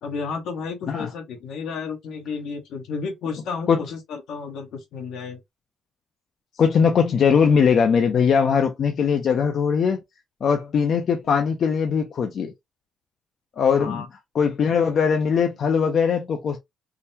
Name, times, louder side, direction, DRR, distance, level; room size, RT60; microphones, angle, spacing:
voice 1, 0.0-5.4 13.8-14.1, left 5 dB, 80° left, 1.1 m, -32 dB
voice 2, 6.6-10.0 10.4-12.5 13.6-14.0 14.3-16.6, left 6 dB, 60° left, 0.5 m, -20 dB
3.7 x 2.1 x 2.7 m
cardioid pair, 90°, 0 cm